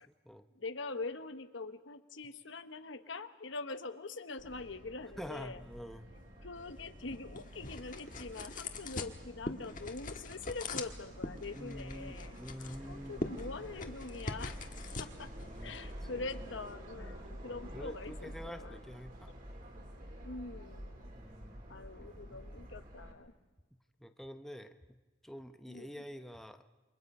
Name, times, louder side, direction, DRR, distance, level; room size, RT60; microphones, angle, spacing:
voice 1, 0.5-5.6 6.4-12.4 12.9-14.6 15.0-18.8 20.2-21.1 21.7-23.3 25.7-26.0, left 3 dB, 75° left, 10 dB, 1.1 m, -44 dB
Subway metro underground, 4.4-23.1, equal, 45° right, 3.9 m, -49 dB
voice 2, 5.2-6.1 11.5-13.3 15.3-15.8 16.1-16.2 17.5-19.3 21.1-22.2 24.0-24.7 25.2-26.6, equal, ahead, 7 dB, 0.8 m, -47 dB
sound 1, 6.6-16.7, left 3 dB, 45° left, 1.5 m, -44 dB
28.5 x 25.0 x 5.5 m, 1.2 s
head